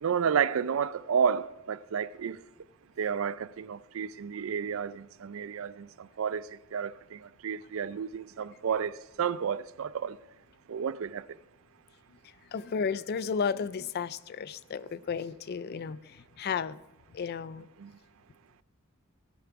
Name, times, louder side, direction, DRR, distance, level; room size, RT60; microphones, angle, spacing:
voice 1, 0.0-2.4 3.0-10.2 10.7-11.2 17.8-17.9, right 7 dB, 70° right, 0.4 m, -31 dB
voice 2, 12.1-16.8 17.1-17.7, left 6 dB, 50° left, 0.4 m, -33 dB
14.5 x 10.5 x 4.6 m
head